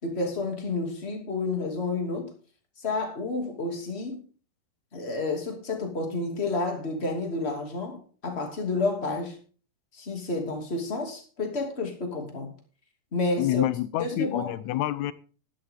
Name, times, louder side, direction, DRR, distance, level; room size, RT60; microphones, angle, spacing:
voice 1, 0.0-2.3 2.8-4.3 4.9-9.4 9.9-12.5 13.1-13.7 13.9-14.5, left 3 dB, 20° left, 2 dB, 2.6 m, -30 dB
voice 2, 13.4-15.1, left 13 dB, 75° left, 16 dB, 1.9 m, -27 dB
12.5 x 12.0 x 3.8 m, 0.38 s
omnidirectional pair, 4.0 m